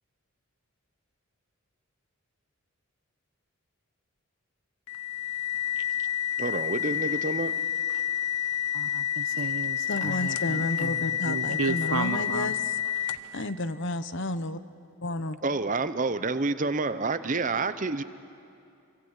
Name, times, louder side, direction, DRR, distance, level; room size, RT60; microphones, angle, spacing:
sound 1, 4.9-13.4, left 10 dB, 85° left, 0.8 m, -29 dB
voice 1, 6.4-7.5 15.4-18.0, right 3 dB, 35° right, 12 dB, 0.8 m, -28 dB
voice 2, 8.7-12.5, right 4 dB, 70° right, 11 dB, 1.1 m, -33 dB
voice 3, 9.9-12.6 13.0-14.6 15.0-15.4, left 1 dB, 55° left, 12 dB, 0.9 m, -32 dB
29.0 x 24.5 x 8.2 m, 2.6 s
head